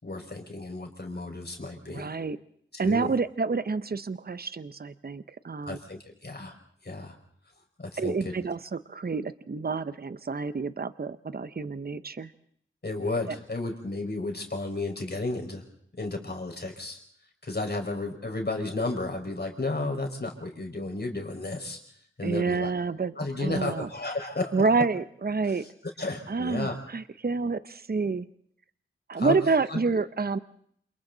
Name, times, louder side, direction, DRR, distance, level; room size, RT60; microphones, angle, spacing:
voice 1, 0.0-2.1 2.7-3.1 5.6-6.5 6.8-7.1 7.8-8.3 12.8-15.6 16.0-17.0 17.4-21.8 22.2-22.7 23.2-24.5 25.4-26.8 29.2-29.4 29.7-29.8, left 2 dB, 55° left, 1 dB, 5.0 m, -33 dB
voice 2, 1.9-2.4 2.8-5.8 8.0-12.3 22.2-23.9 24.5-25.6 26.3-28.3 29.1-30.4, right 4 dB, 50° right, 13 dB, 0.8 m, -28 dB
28.5 x 28.0 x 4.0 m, 0.66 s
wide cardioid pair, 65°, 20 cm